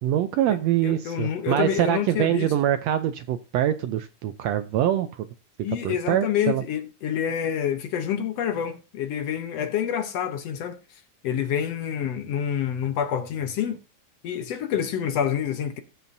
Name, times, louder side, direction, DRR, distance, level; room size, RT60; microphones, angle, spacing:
voice 1, 0.0-5.3 5.8-6.6, right 12 dB, 75° right, 1.6 m, -24 dB
voice 2, 0.8-2.5 5.6-13.8 14.2-15.8, left 9 dB, 65° left, 1.8 m, -27 dB
19.5 x 7.6 x 2.7 m
omnidirectional pair, 3.5 m